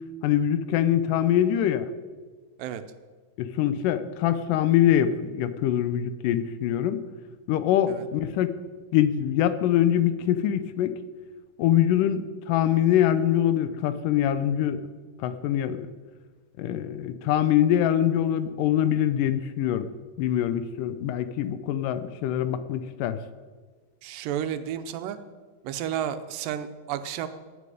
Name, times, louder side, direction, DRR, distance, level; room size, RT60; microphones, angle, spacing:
voice 1, 0.2-1.9 3.4-7.0 7.5-8.6 8.9-11.0 11.6-14.8 15.2-15.9 16.6-19.9 20.2-23.2, left 11 dB, 80° left, 12 dB, 2.3 m, -24 dB
voice 2, 24.0-25.2 25.6-27.3, right 10 dB, 85° right, 10 dB, 2.5 m, -31 dB
16.0 x 9.4 x 5.0 m, 1.5 s
omnidirectional pair, 3.9 m